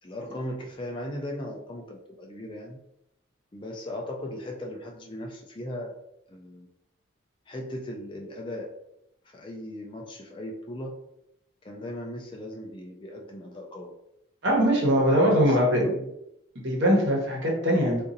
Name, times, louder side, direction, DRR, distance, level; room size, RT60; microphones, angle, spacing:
voice 1, 0.0-2.8 3.5-5.9 6.3-6.7 7.5-8.7 9.2-10.9 11.6-13.9 14.9-16.1, left 1 dB, 25° left, 0 dB, 0.4 m, -37 dB
voice 2, 14.4-15.8 16.6-18.0, equal, 65° right, -2 dB, 1.1 m, -21 dB
3.9 x 2.6 x 2.6 m, 0.80 s
head